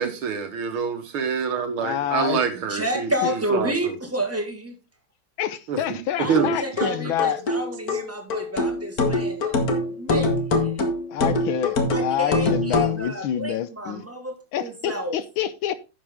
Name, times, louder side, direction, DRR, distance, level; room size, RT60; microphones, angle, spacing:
voice 1, 0.0-3.1 3.5-3.9 5.7-6.0 6.3-6.5, right 6 dB, 70° right, 2.2 m, -26 dB
voice 2, 1.8-2.4 3.2-3.3 5.4-7.4 11.1-14.0 14.5-15.7, left 10 dB, 75° left, 1.4 m, -27 dB
voice 3, 2.7-4.7 6.2-9.6 9.9-10.3 10.6-10.8 11.9-15.2, right 1 dB, 5° right, 1.6 m, -30 dB
sound 1, 6.3-13.0, left 2 dB, 45° left, 1.8 m, -24 dB
10.5 x 7.0 x 3.6 m
omnidirectional pair, 2.4 m